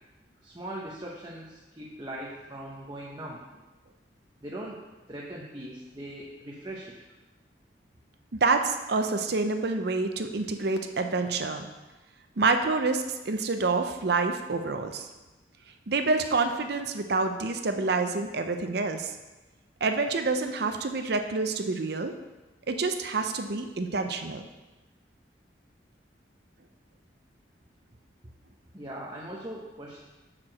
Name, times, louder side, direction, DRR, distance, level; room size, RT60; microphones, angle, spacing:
voice 1, 0.4-3.4 4.4-4.8 5.1-7.0 28.7-30.0, right 1 dB, 25° right, -4 dB, 0.8 m, -40 dB
voice 2, 8.3-11.7 12.4-15.1 15.9-19.2 19.8-22.1 22.7-24.4, right 3 dB, 60° right, 7 dB, 0.6 m, -27 dB
5.9 x 4.5 x 6.3 m, 1.1 s
head